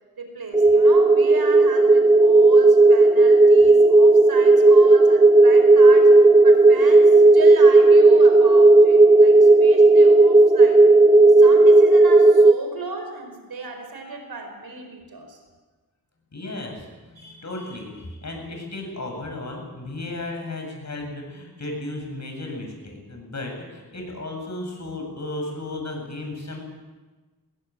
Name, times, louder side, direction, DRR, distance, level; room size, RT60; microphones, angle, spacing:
voice 1, 0.2-6.1 6.4-10.9 11.4-15.4, right 3 dB, 85° right, 5 dB, 4.7 m, -35 dB
sound 1, 0.5-12.5, right 2 dB, 15° right, 0.7 m, -13 dB
voice 2, 16.3-26.6, left 2 dB, 50° left, 2 dB, 7.9 m, -34 dB
20.0 x 18.0 x 8.9 m, 1.3 s
cardioid pair, 65°, 36 cm